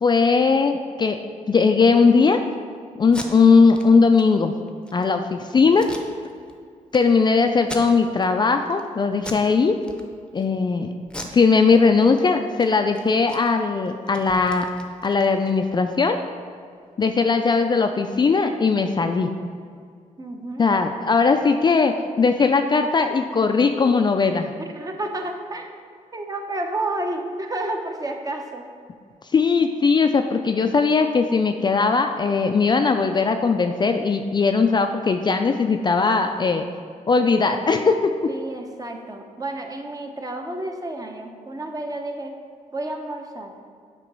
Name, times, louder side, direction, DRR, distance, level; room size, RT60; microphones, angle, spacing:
voice 1, 0.0-1.2 1.5-2.4 3.0-4.5 4.9-5.9 6.9-9.7 10.3-10.9 11.3-14.7 15.0-16.2 17.0-19.3 20.6-24.5 29.3-36.7 37.1-38.1, left 4 dB, 30° left, 6 dB, 0.4 m, -19 dB
Packing tape duct tape, 3.0-3.3 3.7-3.8 4.1-4.2 4.7-5.0 5.7-6.5 6.9-7.0 7.6-8.3 8.6-8.9 9.2-9.5 9.8-10.4 11.0-12.2 12.5-12.7 12.9-15.6, left 1 dB, 5° left, 0.8 m, -38 dB
voice 2, 20.2-20.6 24.6-25.7 26.1-28.7 38.3-42.3 42.7-43.5, right 2 dB, 25° right, 3 dB, 0.8 m, -30 dB
7.5 x 3.0 x 5.3 m, 2.2 s
cardioid pair, 75°, 14 cm